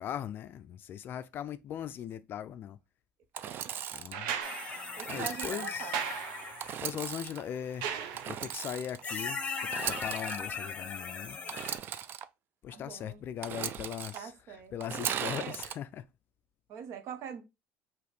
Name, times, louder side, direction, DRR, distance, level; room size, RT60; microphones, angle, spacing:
voice 1, 0.0-2.8 3.9-4.3 5.1-6.0 6.8-11.4 12.6-16.1, left 10 dB, 45° left, 0.3 m, -40 dB
Engine / Sawing, 3.3-4.2 5.0-5.8 6.6-7.4 8.2-9.0 9.6-10.4 11.5-12.2 13.4-14.2 14.8-15.8, right 9 dB, 40° right, 0.3 m, -37 dB
voice 2, 3.4-3.8 5.0-5.9 12.7-13.2 14.1-14.7 15.4-15.5 16.7-17.4, right 7 dB, 60° right, 0.9 m, -43 dB
sound 1, 4.1-8.7 10.3-10.4, right 8 dB, 90° right, 0.6 m, -39 dB
sound 2, 4.4-6.8 8.2-8.3 9.0-11.8, left 5 dB, 25° left, 0.8 m, -38 dB
4.9 x 3.0 x 3.1 m
cardioid pair, 130°, 5 cm